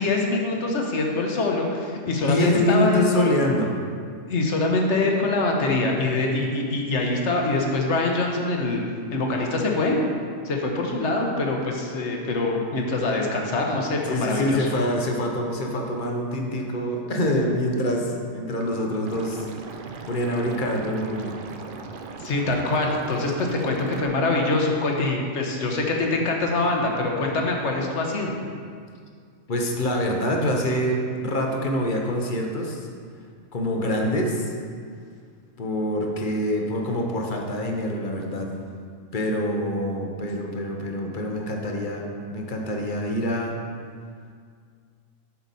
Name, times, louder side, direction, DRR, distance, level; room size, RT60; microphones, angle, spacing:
voice 1, 0.0-3.2 4.3-8.8 9.1-10.0 10.4-14.7 22.2-28.3, left 2 dB, 60° left, 1 dB, 1.3 m, -24 dB
voice 2, 2.1-3.7 14.1-19.5 20.1-21.4 29.5-32.9 33.5-34.5 35.6-38.5 39.1-43.6, left 1 dB, 45° left, 1 dB, 0.9 m, -25 dB
Liquid, 19.1-24.1, right 4 dB, 55° right, 0.6 m, -38 dB
8.3 x 5.9 x 4.0 m, 2.1 s
omnidirectional pair, 1.4 m